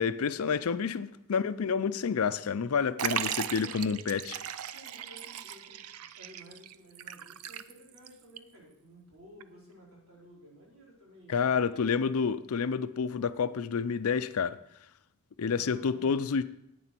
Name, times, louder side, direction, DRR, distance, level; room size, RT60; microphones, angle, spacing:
voice 1, 0.0-4.3 11.3-14.6 15.4-16.4, left 6 dB, 75° left, 0.5 m, -29 dB
voice 2, 3.0-4.1 4.7-12.2 15.4-16.3, equal, 70° right, 4.3 m, -54 dB
Liquid, 3.0-8.1 8.4-8.5 9.4-9.5, right 9 dB, 90° right, 0.5 m, -37 dB
11.0 x 9.3 x 4.5 m
head